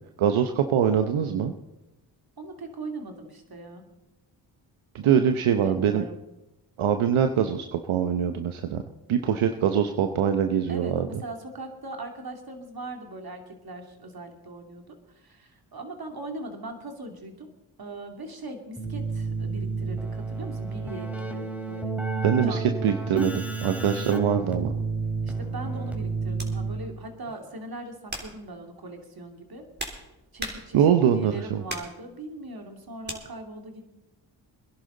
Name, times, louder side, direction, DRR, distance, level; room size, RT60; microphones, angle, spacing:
voice 1, 0.2-1.5 4.9-6.0 6.8-8.8 9.1-11.2 22.2-24.7 30.7-31.6, right 8 dB, 75° right, 7 dB, 0.9 m, -23 dB
voice 2, 2.4-3.9 5.0-6.2 9.2-10.1 10.7-17.5 17.8-22.0 22.4-22.6 25.2-29.7 30.3-33.9, right 2 dB, 45° right, 4 dB, 2.7 m, -40 dB
Keyboard (musical), 18.8-27.1, right 4 dB, 5° right, 2.6 m, -31 dB
sound 1, 25.0-25.2 26.4-26.6 27.3-27.5 28.1-28.4 29.3-31.0 31.7-32.0 33.0-33.2, right 1 dB, 20° right, 3.3 m, -38 dB
22.0 x 11.0 x 3.9 m, 0.96 s
supercardioid pair, 45°, 50 cm